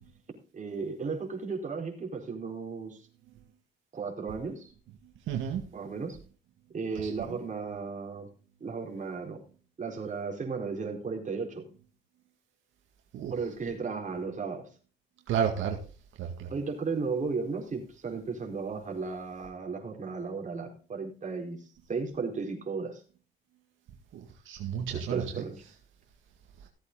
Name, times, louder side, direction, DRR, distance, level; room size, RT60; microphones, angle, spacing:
voice 1, 0.5-3.0 3.9-4.7 5.7-6.2 6.7-8.3 8.6-9.4 9.8-11.6 13.3-14.7 16.5-21.6 21.9-23.0 24.9-25.6, right 4 dB, 40° right, 2 dB, 4.3 m, -35 dB
voice 2, 5.3-5.6 7.0-7.1 13.1-13.3 15.3-15.8 16.2-16.5 24.1-25.4, right 8 dB, 85° right, 2 dB, 2.0 m, -31 dB
16.0 x 8.2 x 3.9 m, 0.37 s
cardioid pair, 90°, 20 cm